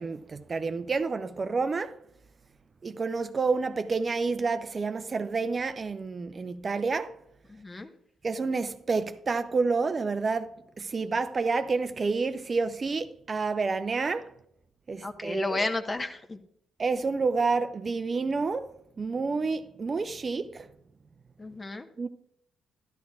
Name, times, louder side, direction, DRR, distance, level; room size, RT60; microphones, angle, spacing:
voice 1, 0.0-1.9 2.8-7.1 8.2-14.3 14.9-15.6 16.8-18.7 19.0-20.7 22.0-22.1, right 4 dB, 35° right, 0.5 m, -29 dB
voice 2, 7.5-7.9 15.0-16.4 21.4-21.9, left 2 dB, 25° left, 1.1 m, -32 dB
13.5 x 11.5 x 2.4 m
figure-of-eight pair, 40°, 0 cm